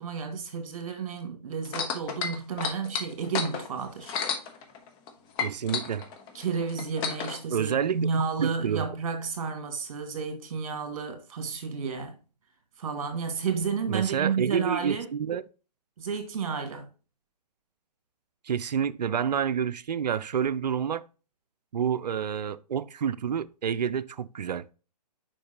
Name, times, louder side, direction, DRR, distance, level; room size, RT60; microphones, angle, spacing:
voice 1, 0.0-4.1 6.3-12.1 12.8-15.1 16.0-16.9, right 5 dB, 55° right, 1.8 m, -31 dB
sound 1, 1.6-5.1 5.4-7.4 8.2-8.3, left 6 dB, 25° left, 1.0 m, -32 dB
voice 2, 5.4-6.0 7.5-8.8 13.9-15.4 18.4-21.0 21.7-24.7, right 8 dB, 75° right, 0.5 m, -29 dB
7.1 x 5.2 x 2.9 m
figure-of-eight pair, 130°, 21 cm